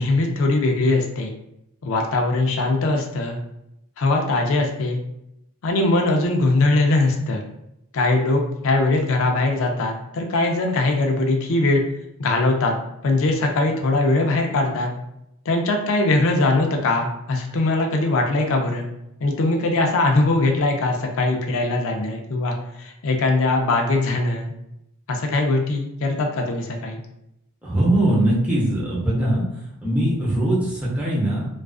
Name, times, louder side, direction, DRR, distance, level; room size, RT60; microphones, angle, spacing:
voice 1, 0.0-1.3 1.8-3.4 4.0-5.0 5.6-7.4 7.9-11.8 12.2-12.7 13.0-14.9 15.5-18.9 19.2-24.5 25.1-27.0, left 2 dB, 60° left, 2 dB, 0.4 m, -21 dB
voice 2, 27.6-31.5, right 1 dB, 5° right, -7 dB, 0.7 m, -21 dB
2.3 x 2.3 x 2.3 m, 0.82 s
head